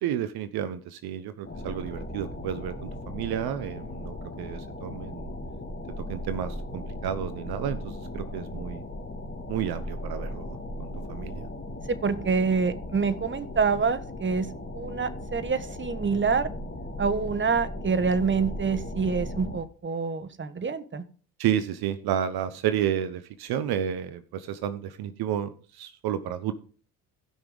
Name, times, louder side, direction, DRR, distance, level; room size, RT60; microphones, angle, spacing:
voice 1, 0.0-5.3 6.1-8.8 9.5-11.5 21.4-26.5, right 10 dB, 65° right, 12 dB, 0.9 m, -31 dB
sound 1, 1.5-19.6, left 1 dB, 25° left, 2.6 m, -37 dB
voice 2, 11.9-14.5 14.7-16.5 17.0-21.0, right 5 dB, 30° right, 13 dB, 1.3 m, -26 dB
16.5 x 6.0 x 3.5 m, 0.40 s
hypercardioid pair, 55°, 41 cm